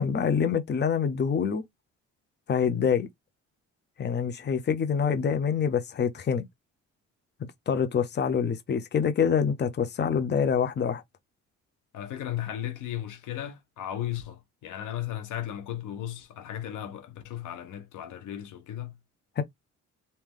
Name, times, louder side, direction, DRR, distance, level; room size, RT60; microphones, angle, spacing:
voice 1, 0.0-1.6 2.5-3.1 4.0-6.4 7.7-11.0 19.4-19.5, left 7 dB, 35° left, 0.7 m, -26 dB
voice 2, 11.9-18.9, left 11 dB, 90° left, 1.0 m, -35 dB
3.2 x 2.8 x 3.6 m
cardioid pair, 90°, 30 cm